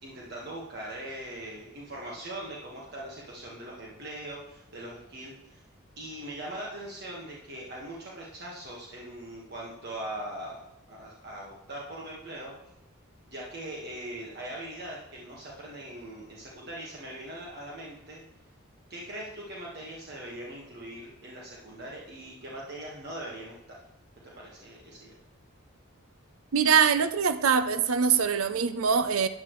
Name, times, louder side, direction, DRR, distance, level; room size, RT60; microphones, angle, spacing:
voice 1, 0.0-5.6 6.0-10.6 10.9-12.5 13.2-18.2 18.9-23.5 24.2-25.1, right 1 dB, 50° right, 1.5 m, -41 dB
voice 2, 26.5-29.3, right 6 dB, 80° right, 0.5 m, -23 dB
12.5 x 8.8 x 3.1 m
head